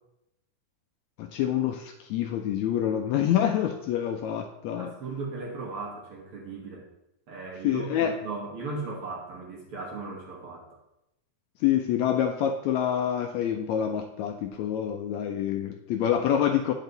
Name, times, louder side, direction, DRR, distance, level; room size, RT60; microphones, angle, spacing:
voice 1, 1.2-4.9 7.6-8.2 11.6-16.7, left 10 dB, 80° left, 5 dB, 1.7 m, -26 dB
voice 2, 4.8-6.8 7.3-10.6, right 3 dB, 55° right, -2 dB, 1.8 m, -37 dB
8.9 x 5.4 x 3.9 m, 0.85 s
omnidirectional pair, 3.6 m